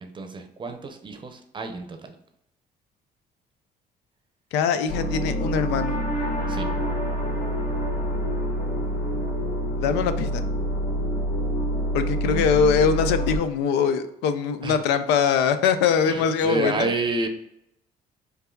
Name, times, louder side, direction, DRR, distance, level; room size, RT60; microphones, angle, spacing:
voice 1, 0.0-2.2 6.5-6.7 12.2-12.8 14.6-14.8 16.1-17.3, right 3 dB, 30° right, 6 dB, 0.6 m, -30 dB
voice 2, 4.5-6.0 9.8-10.4 11.9-16.9, left 7 dB, 90° left, 11 dB, 0.5 m, -22 dB
sound 1, 4.9-13.4, equal, 65° left, 1.5 m, -26 dB
4.6 x 2.7 x 3.7 m, 0.81 s
cardioid pair, 110°, 17 cm